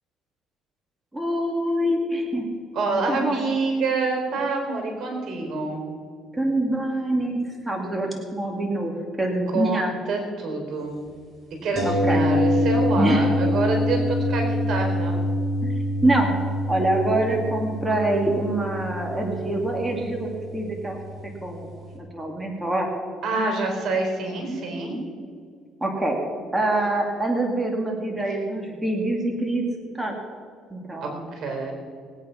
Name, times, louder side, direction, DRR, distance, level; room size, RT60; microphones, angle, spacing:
voice 1, 1.1-2.5 3.1-3.5 6.3-8.9 9.2-9.9 11.8-12.2 12.9-13.3 15.6-15.7 16.0-16.3 16.7-21.0 21.4-21.7 21.9-22.9 25.8-26.2 26.5-29.6 29.9-30.2 30.7-31.3, right 1 dB, 10° right, 0 dB, 2.3 m, -25 dB
voice 2, 2.7-5.8 9.5-11.0 11.6-15.2 23.2-25.0 31.0-31.7, right 3 dB, 65° right, 3 dB, 3.9 m, -27 dB
sound 1, 11.8-21.6 21.9-22.0, left 1 dB, 40° right, 3.2 m, -25 dB
20.0 x 9.0 x 5.8 m, 2.2 s
cardioid pair, 105°, 0 cm